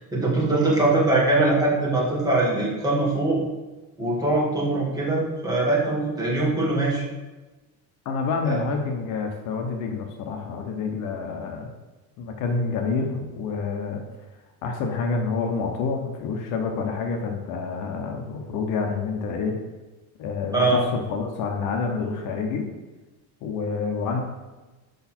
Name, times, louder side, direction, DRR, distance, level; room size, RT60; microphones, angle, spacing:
voice 1, 0.0-3.4 4.0-7.0 8.4-8.6 20.5-20.8, right 2 dB, 10° right, -5 dB, 1.6 m, -22 dB
voice 2, 8.0-11.7 12.2-14.0 14.6-19.6 20.2-22.7 23.4-24.2, left 4 dB, 55° left, 3 dB, 1.0 m, -28 dB
6.6 x 5.8 x 4.4 m, 1.2 s
cardioid pair, 175°, 37 cm